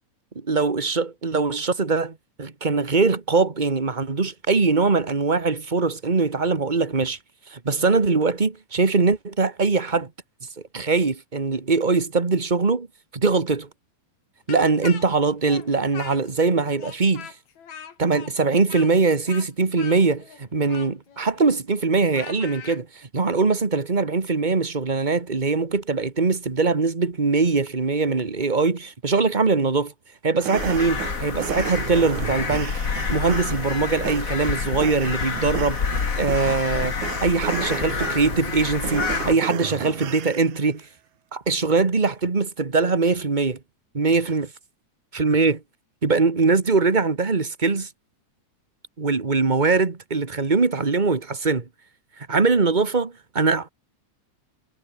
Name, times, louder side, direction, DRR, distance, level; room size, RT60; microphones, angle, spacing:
voice 1, 0.5-7.2 7.5-10.1 10.7-12.9 13.1-13.7 14.5-17.3 18.0-29.9 30.2-32.8 33.1-37.0 37.2-40.8 41.3-43.6 43.9-44.5 45.1-45.6 46.0-47.9 49.0-51.7 52.3-53.7, right 4 dB, 25° right, 1.2 m, -22 dB
Speech, 14.5-16.5 16.8-22.8, left 7 dB, 75° left, 4.0 m, -41 dB
sound 1, 30.4-40.6, right 11 dB, 80° right, 3.0 m, -34 dB
sound 2, 30.6-39.3, left 5 dB, 35° left, 1.9 m, -28 dB
omnidirectional pair, 3.3 m